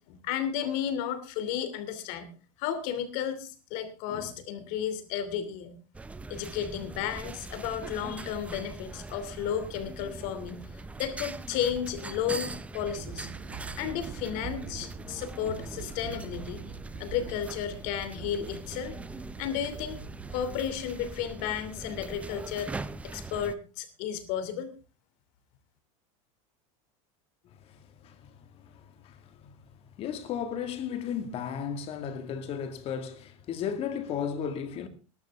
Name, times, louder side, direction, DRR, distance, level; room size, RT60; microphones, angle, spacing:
voice 1, 0.0-2.3 2.6-5.8 6.3-13.3 13.8-16.6 17.0-19.0 19.4-20.0 20.3-22.7 23.0-24.7, left 9 dB, 50° left, 2.9 m, -33 dB
sound 1, 5.9-23.6, right 3 dB, 10° right, 0.6 m, -41 dB
sound 2, 12.9-20.6, right 7 dB, 30° right, 2.0 m, -44 dB
voice 2, 27.5-34.9, left 8 dB, 35° left, 2.0 m, -35 dB
19.5 x 12.0 x 3.6 m
supercardioid pair, 155°, 17 cm